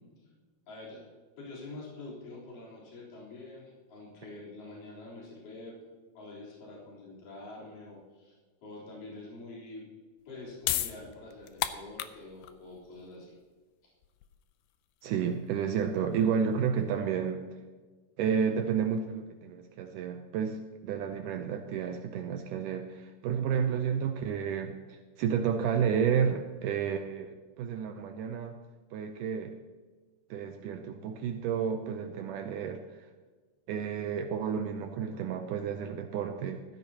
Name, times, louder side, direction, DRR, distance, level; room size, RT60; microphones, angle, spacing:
voice 1, 0.7-1.1 1.4-5.8 6.1-9.9 10.2-13.3, left 2 dB, 55° left, -5 dB, 5.2 m, -46 dB
sound 1, 10.2-16.9, left 12 dB, 80° left, 2.4 m, -37 dB
voice 2, 15.0-17.6 18.2-28.6 28.9-29.5 30.3-33.1 33.7-36.6, right 7 dB, 90° right, 5 dB, 1.8 m, -31 dB
15.5 x 13.5 x 2.9 m, 1.4 s
omnidirectional pair, 4.6 m